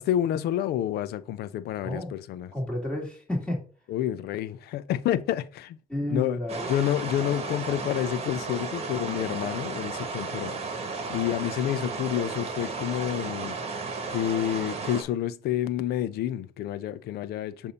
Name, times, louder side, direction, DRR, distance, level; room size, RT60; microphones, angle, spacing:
voice 1, 0.0-2.5 3.9-5.8 6.1-6.4 6.7-10.6 11.1-13.6 14.1-17.7, left 11 dB, 70° left, 0.5 m, -29 dB
voice 2, 2.5-3.6 5.9-6.7, left 1 dB, 5° left, 2.4 m, -31 dB
sound 1, 6.5-15.0, right 4 dB, 35° right, 1.3 m, -34 dB
6.8 x 2.7 x 5.5 m
cardioid pair, 110°, 17 cm